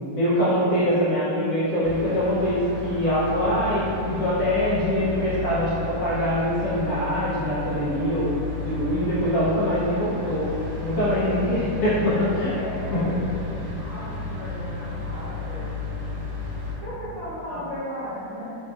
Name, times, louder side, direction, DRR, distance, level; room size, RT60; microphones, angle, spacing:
voice 1, 0.1-10.5 10.8-12.5 12.9-13.0 17.5-17.6, equal, 65° left, -11 dB, 0.9 m, -23 dB
sound 1, 1.8-16.8, left 3 dB, 70° right, 1.3 m, -33 dB
voice 2, 12.4-15.9 16.8-18.6, equal, 55° right, -12 dB, 1.0 m, -36 dB
3.3 x 2.6 x 2.2 m, 2.7 s
omnidirectional pair, 2.0 m